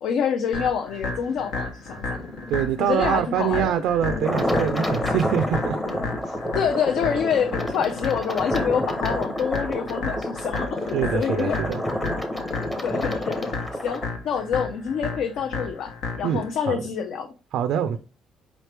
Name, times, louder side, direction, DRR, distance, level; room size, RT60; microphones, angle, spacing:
voice 1, 0.0-2.2 2.8-3.7 6.5-11.7 12.8-13.4 13.8-15.9 16.2-17.3, left 7 dB, 65° left, 0.5 m, -26 dB
sound 1, 0.5-16.5, left 3 dB, 85° left, 1.1 m, -33 dB
Growling, 1.2-2.9 3.3-6.3 6.8-13.6 13.9-14.0, left 3 dB, 40° left, 0.9 m, -34 dB
voice 2, 2.5-5.8 10.9-11.8 16.2-16.8 17.5-18.0, right 9 dB, 75° right, 0.4 m, -24 dB
sound 2, 4.2-14.1, equal, 10° left, 0.7 m, -29 dB
5.0 x 3.1 x 3.2 m
cardioid pair, 150°, 0 cm